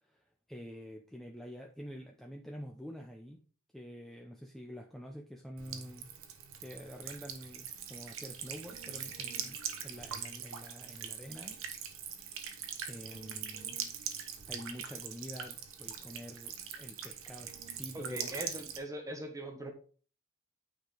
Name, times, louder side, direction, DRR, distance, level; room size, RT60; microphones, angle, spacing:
voice 1, 0.0-3.4 3.7-6.1 6.6-11.6 12.8-13.8 14.5-18.4, equal, ahead, 1 dB, 0.7 m, -47 dB
Buzz / Water tap faucet / Trickle dribble, 5.6-18.8, right 8 dB, 60° right, 1.1 m, -42 dB
voice 2, 17.9-19.7, right 1 dB, 15° right, 5 dB, 1.4 m, -41 dB
9.1 x 5.1 x 3.9 m, 0.41 s
head